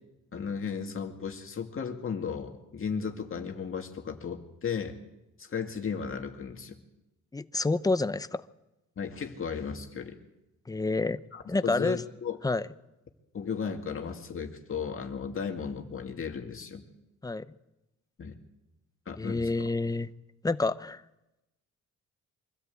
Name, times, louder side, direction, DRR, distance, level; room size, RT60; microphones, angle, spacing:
voice 1, 0.3-5.0 5.4-6.8 9.0-10.2 11.3-12.4 13.3-16.8 18.2-18.4 19.1-19.7, left 6 dB, 45° left, 3 dB, 2.3 m, -35 dB
voice 2, 7.3-8.4 10.7-11.2 11.5-12.0 12.4-12.7 17.2-17.4 19.2-20.1 20.4-21.0, left 3 dB, 10° left, 13 dB, 0.8 m, -28 dB
24.0 x 13.0 x 8.4 m, 0.97 s
cardioid pair, 90°, 30 cm